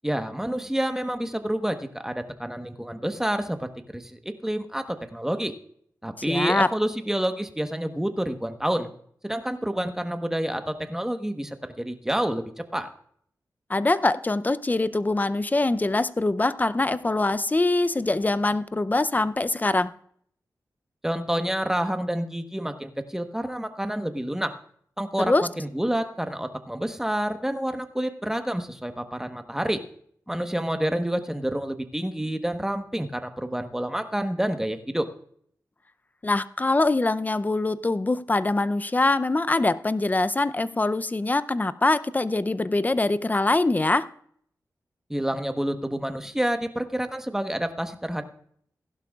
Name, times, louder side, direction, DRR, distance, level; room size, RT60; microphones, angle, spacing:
voice 1, 0.0-5.5 6.0-8.9 9.2-12.9 21.0-24.5 25.0-29.8 30.3-35.1 45.1-48.2, right 1 dB, 5° right, 7 dB, 1.1 m, -28 dB
voice 2, 6.3-6.7 13.7-19.9 25.2-25.5 36.2-44.1, left 2 dB, 25° left, 15 dB, 0.5 m, -23 dB
15.5 x 11.5 x 2.4 m, 0.63 s
cardioid pair, 60°, 7 cm